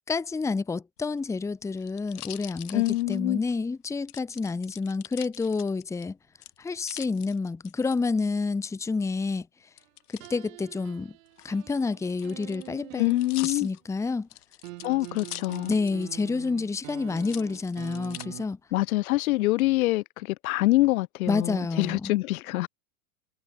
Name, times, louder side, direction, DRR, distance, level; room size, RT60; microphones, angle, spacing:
voice 1, 0.0-6.2 6.6-9.5 10.1-11.1 11.4-13.1 13.4-14.3 15.7-18.6 21.3-22.1, left 4 dB, 5° left, 1.1 m, -29 dB
sound 1, 1.0-3.6 4.1-6.0 6.4-8.0 9.8-10.3 11.3-16.2 16.5-16.6 17.1-18.3 18.9-19.4, left 14 dB, 80° left, 4.7 m, -44 dB
voice 2, 2.7-3.4 13.0-13.7 14.8-15.8 18.7-22.7, left 19 dB, 65° left, 1.7 m, -25 dB
sound 2, 10.2-13.7 14.6-18.5, right 22 dB, 60° right, 4.8 m, -45 dB
supercardioid pair, 150°, 45 cm